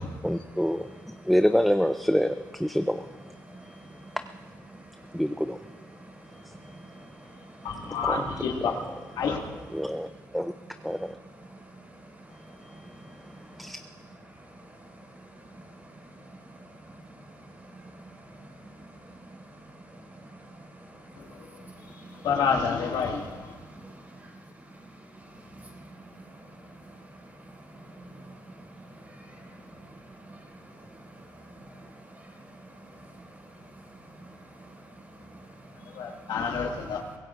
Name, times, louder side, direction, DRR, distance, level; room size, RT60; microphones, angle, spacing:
voice 1, 0.0-3.2 3.7-3.8 5.1-5.6 8.1-8.3 9.7-10.1 10.3-10.5 10.8-11.2 13.6-13.8, equal, ahead, 0.4 m, -26 dB
voice 2, 3.4-4.2 4.7-5.2 5.9-7.9 11.4-13.7 14.3-22.3 23.6-36.3, right 1 dB, 25° right, 4.9 m, -49 dB
voice 3, 7.6-8.8 9.2-9.4 21.2-21.3 22.2-23.6 35.9-37.0, left 5 dB, 80° left, 2.0 m, -28 dB
24.0 x 17.0 x 2.5 m
cardioid pair, 100°, 7 cm